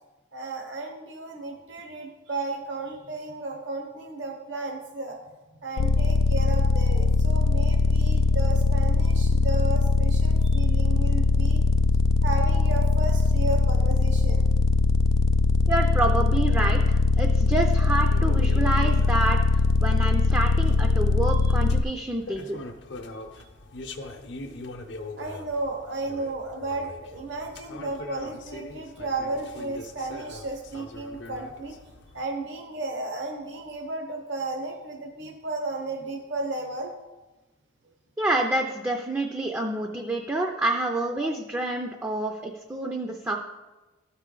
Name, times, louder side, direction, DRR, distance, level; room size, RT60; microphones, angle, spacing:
voice 1, 0.3-5.2 5.6-11.6 12.2-14.4 21.3-21.4 23.4-23.5 25.2-31.7 32.1-36.9, right 2 dB, 65° right, 2 dB, 0.9 m, -34 dB
sound 1, 5.8-21.8, left 3 dB, 90° left, 0.3 m, -21 dB
voice 2, 15.7-22.6 38.2-43.4, right 2 dB, 10° right, 2 dB, 0.4 m, -28 dB
sound 2, 17.5-32.2, left 2 dB, 65° left, 0.7 m, -42 dB
12.5 x 4.3 x 3.8 m, 1.2 s
head